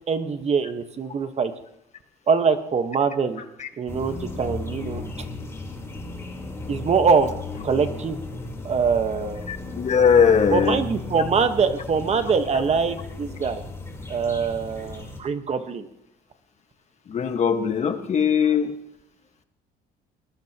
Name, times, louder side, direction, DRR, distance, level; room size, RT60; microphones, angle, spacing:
voice 1, 0.1-1.5 2.3-3.4 3.8-5.0 6.7-7.3 7.6-8.2 8.6-9.5 10.5-13.6 14.1-15.9, right 5 dB, 40° right, 8 dB, 1.3 m, -23 dB
sound 1, 3.9-15.2, left 2 dB, 15° left, 3.9 m, -35 dB
voice 2, 9.5-10.8 17.1-18.7, left 7 dB, 40° left, 7 dB, 1.5 m, -20 dB
23.0 x 20.5 x 3.0 m, 0.82 s
cardioid pair, 110°, 17 cm